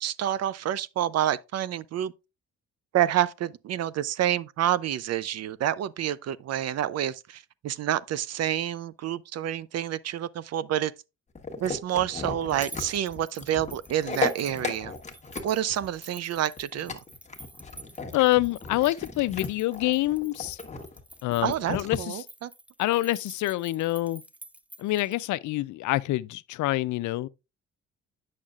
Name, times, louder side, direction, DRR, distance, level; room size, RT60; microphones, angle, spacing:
voice 1, 0.0-2.1 2.9-10.9 11.6-14.9 15.4-16.9 21.4-22.5, right 11 dB, 60° right, 0.5 m, -28 dB
sound 1, 11.4-22.0, left 4 dB, 25° left, 1.2 m, -36 dB
sound 2, 12.5-25.2, right 2 dB, 5° right, 0.4 m, -49 dB
voice 2, 18.1-20.6 21.2-22.2 22.8-24.2 24.8-27.3, left 17 dB, 75° left, 0.4 m, -26 dB
8.7 x 6.4 x 2.4 m
cardioid pair, 90°, 30 cm